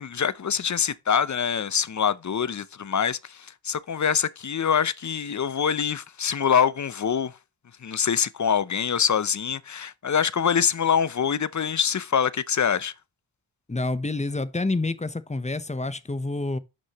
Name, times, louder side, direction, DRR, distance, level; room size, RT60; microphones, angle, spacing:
voice 1, 0.0-7.3 7.8-12.9, left 7 dB, 40° left, 0.6 m, -25 dB
voice 2, 13.7-16.6, left 2 dB, 15° left, 0.8 m, -28 dB
11.5 x 6.2 x 3.0 m
wide cardioid pair, 95°, 47 cm